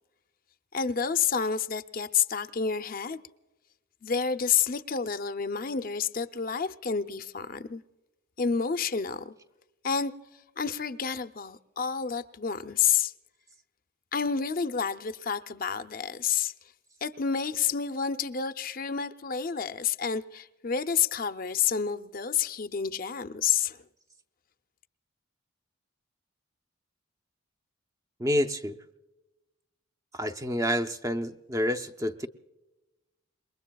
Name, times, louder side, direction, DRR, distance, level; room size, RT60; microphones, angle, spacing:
voice 1, 0.7-3.2 4.0-7.8 8.4-9.3 9.8-10.1 10.6-13.1 14.1-16.5 17.0-23.8, left 6 dB, 40° left, 0.5 m, -29 dB
voice 2, 28.2-28.8 30.1-32.3, equal, 15° right, 0.6 m, -28 dB
27.5 x 22.0 x 2.3 m
head